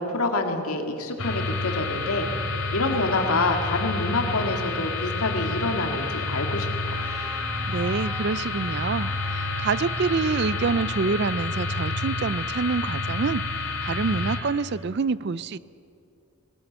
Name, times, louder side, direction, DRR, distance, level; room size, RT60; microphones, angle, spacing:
voice 1, 0.0-2.3 2.7-6.9, left 2 dB, 85° left, 4 dB, 2.1 m, -27 dB
sound 1, 1.2-14.4, left 3 dB, 65° left, 2.9 m, -29 dB
Trumpet, 6.8-11.1, right 1 dB, 10° right, 2.5 m, -42 dB
voice 2, 7.7-15.6, right 4 dB, 50° right, 18 dB, 0.4 m, -27 dB
18.5 x 18.0 x 8.0 m, 2.6 s
head